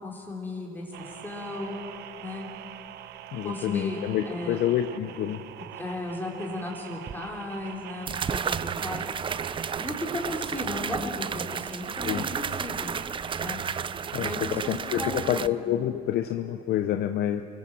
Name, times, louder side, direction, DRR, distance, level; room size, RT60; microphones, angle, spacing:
voice 1, 0.0-1.8 2.2-2.5 3.4-4.7 5.7-9.1 9.7-12.9 13.4-13.6 14.2-15.6, left 2 dB, 10° left, -1 dB, 3.5 m, -35 dB
sound 1, 0.9-14.6, right 12 dB, 75° right, 0.8 m, -45 dB
voice 2, 3.3-5.4 12.0-12.2 14.1-17.4, left 11 dB, 70° left, 9 dB, 0.8 m, -28 dB
sound 2, 7.1-7.2 8.1-15.5, right 7 dB, 30° right, 0.5 m, -32 dB
28.0 x 18.0 x 7.2 m, 2.7 s
cardioid pair, 110°, 17 cm